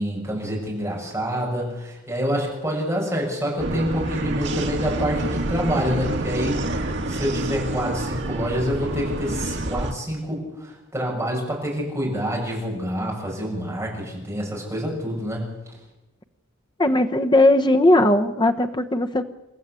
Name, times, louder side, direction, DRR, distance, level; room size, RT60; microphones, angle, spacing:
voice 1, 0.0-15.5, equal, 10° right, -3 dB, 7.8 m, -27 dB
sound 1, 3.6-9.9, right 2 dB, 55° right, 2.0 m, -27 dB
voice 2, 16.8-19.2, left 1 dB, 20° left, 7 dB, 1.0 m, -18 dB
28.5 x 15.0 x 8.4 m, 1.0 s
head